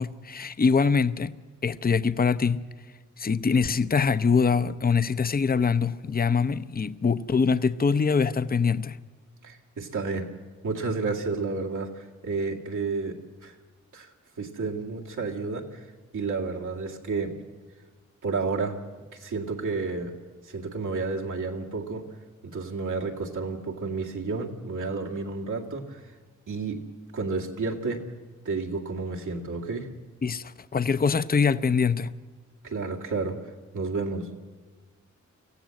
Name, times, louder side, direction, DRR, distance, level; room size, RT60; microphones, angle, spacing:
voice 1, 0.0-1.3 1.6-2.6 3.2-9.0 30.2-32.1, left 5 dB, 30° left, 0.7 m, -24 dB
voice 2, 9.4-10.3 10.6-13.6 13.9-14.1 14.4-15.9 16.1-17.4 18.2-18.8 19.1-20.1 20.4-22.0 22.4-26.1 26.5-26.9 27.1-28.0 28.4-29.9 32.6-33.4 33.7-34.3, right 4 dB, 85° right, 2.2 m, -31 dB
25.0 x 15.5 x 7.7 m
cardioid pair, 60°, 30 cm